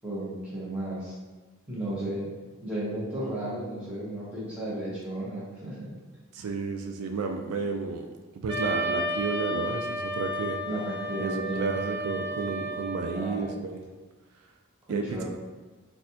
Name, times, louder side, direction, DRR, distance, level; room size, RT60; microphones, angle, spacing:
voice 1, 0.0-1.1 1.7-2.3 2.6-5.9 6.4-6.5 10.6-11.7 13.1-13.6 14.9-15.2, right 1 dB, 5° right, -9 dB, 1.0 m, -34 dB
voice 2, 6.3-8.1 8.4-10.6 11.2-13.8 14.9-15.2, right 4 dB, 85° right, 5 dB, 0.3 m, -32 dB
Wind instrument woodwind instrument, 8.5-13.4, equal, 30° right, 0.6 m, -32 dB
4.1 x 2.3 x 2.7 m, 1.3 s
head